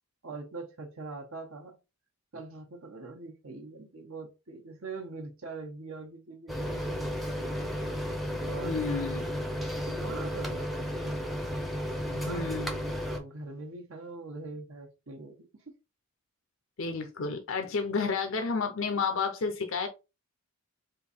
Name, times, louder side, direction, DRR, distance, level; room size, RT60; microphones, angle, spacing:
voice 1, 0.2-1.8 2.3-7.5 8.5-9.0 9.6-11.3 12.1-12.7 13.0-15.7 18.0-18.1, right 3 dB, 75° right, 1.0 m, -43 dB
sound 1, 6.5-13.2, equal, ahead, 0.6 m, -33 dB
voice 2, 8.6-9.3 12.3-12.8 16.8-19.9, left 4 dB, 65° left, 0.6 m, -31 dB
3.7 x 2.7 x 4.2 m
head